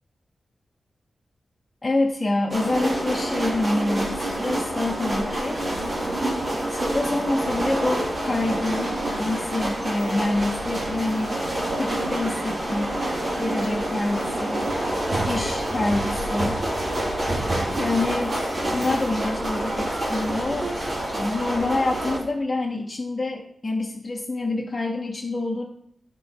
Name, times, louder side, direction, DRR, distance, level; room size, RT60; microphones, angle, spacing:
voice 1, 1.8-5.7 6.7-11.3 11.8-13.0 13.4-14.7 15.2-16.9 17.8-20.7 21.1-25.6, left 2 dB, 30° left, 0 dB, 0.8 m, -27 dB
sound 1, 2.5-22.2, right 1 dB, 50° right, 2.7 m, -27 dB
10.0 x 3.9 x 4.1 m, 0.70 s
cardioid pair, 65°, 0 cm